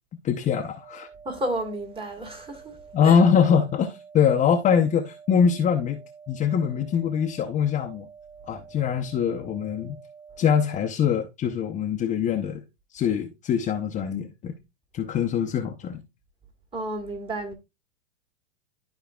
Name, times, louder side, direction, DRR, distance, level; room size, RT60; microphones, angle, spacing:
voice 1, 0.2-1.1 2.9-6.0 6.3-8.1 8.5-10.0 10.4-12.6 12.9-14.5 14.9-16.0, left 7 dB, 20° left, 0.7 m, -23 dB
sound 1, 0.8-10.8, right 5 dB, 90° right, 3.9 m, -48 dB
voice 2, 1.2-3.1 16.7-17.5, right 1 dB, 15° right, 1.5 m, -32 dB
13.0 x 4.7 x 2.3 m
hypercardioid pair, 130°, 34 cm